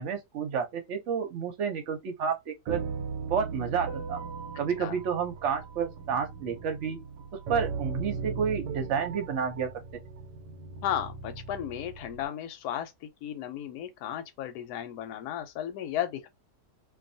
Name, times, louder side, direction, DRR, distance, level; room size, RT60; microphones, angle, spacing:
voice 1, 0.0-2.8 3.3-4.2 4.6-7.0 7.5-9.7, right 6 dB, 60° right, 0.8 m, -30 dB
sound 1, 2.7-12.3, right 5 dB, 85° right, 1.2 m, -38 dB
voice 2, 10.8-16.3, left 10 dB, 75° left, 1.0 m, -34 dB
2.6 x 2.3 x 2.6 m
omnidirectional pair, 1.8 m